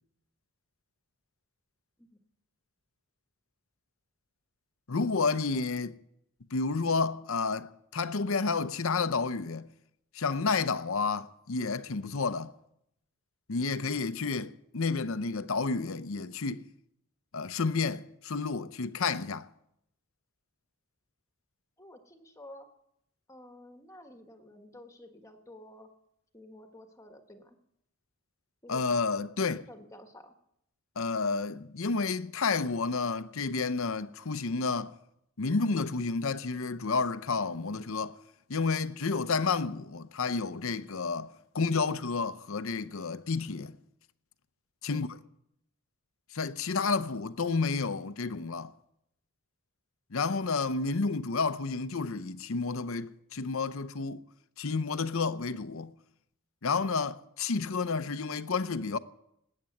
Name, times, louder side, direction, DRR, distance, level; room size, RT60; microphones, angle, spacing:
voice 1, 4.9-6.0 6.5-9.7 10.1-12.5 13.5-16.6 17.3-19.5 28.7-29.6 31.0-34.9 35.4-38.2 38.5-43.8 44.8-45.1 46.3-48.7 50.1-54.2 54.6-55.9 56.6-59.0, left 4 dB, 65° left, 0.7 m, -30 dB
voice 2, 21.8-22.7 23.3-25.9 26.3-27.6 28.6-28.9 29.5-30.3 44.9-45.0, left 1 dB, 15° left, 1.3 m, -51 dB
20.0 x 8.9 x 7.8 m
head